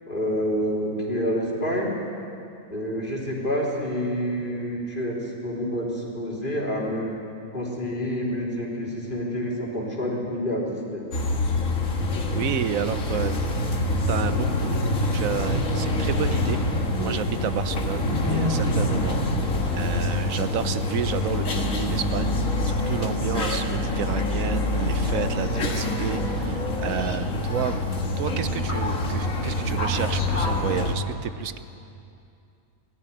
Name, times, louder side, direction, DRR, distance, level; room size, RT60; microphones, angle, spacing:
voice 1, 0.1-1.9 2.7-7.1 7.5-11.1, equal, 35° left, -3 dB, 3.7 m, -28 dB
sound 1, 11.1-30.9, left 1 dB, 70° left, 2.1 m, -25 dB
voice 2, 12.3-13.3 14.1-14.8 15.1-22.3 22.6-27.8 28.2-31.6, right 8 dB, 75° right, 11 dB, 1.3 m, -31 dB
19.5 x 14.0 x 9.9 m, 2.6 s
omnidirectional pair, 1.4 m